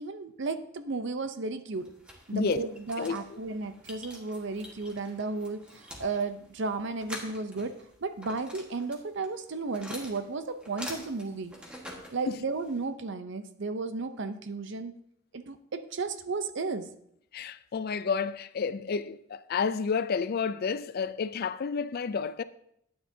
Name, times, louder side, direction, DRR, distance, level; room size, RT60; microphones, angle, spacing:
voice 1, 0.0-1.9 2.3-7.8 8.0-11.5 12.1-14.9 15.3-16.9, right 3 dB, 60° right, 0.6 m, -34 dB
sound 1, 1.8-12.8, left 1 dB, 5° right, 1.5 m, -46 dB
voice 2, 2.3-2.7 3.0-3.4 12.3-12.4 17.3-22.4, left 5 dB, 50° left, 0.4 m, -30 dB
12.0 x 9.5 x 2.7 m
head